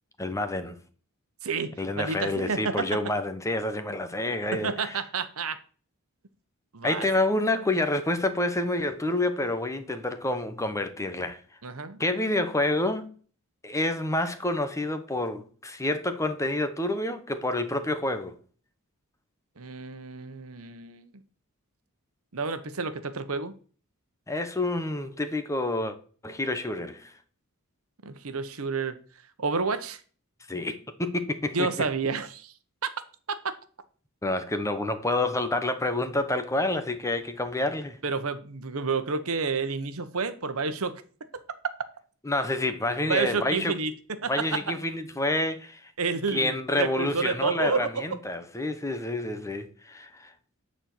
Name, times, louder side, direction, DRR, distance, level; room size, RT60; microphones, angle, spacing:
voice 1, 0.2-0.8 1.8-5.0 6.8-11.4 12.0-13.1 13.6-18.4 24.3-26.0 26.2-27.1 30.5-31.9 34.2-38.0 42.2-43.8 44.2-45.9 46.3-50.3, left 2 dB, 15° left, 0.9 m, -28 dB
voice 2, 1.4-2.7 4.6-5.6 6.7-7.0 11.6-12.0 19.6-21.1 22.3-23.5 28.0-29.0 29.4-30.0 31.5-32.5 38.0-40.9 43.1-43.9 44.2-44.3 46.0-47.9, right 4 dB, 70° right, 1.0 m, -30 dB
9.7 x 4.4 x 7.6 m
head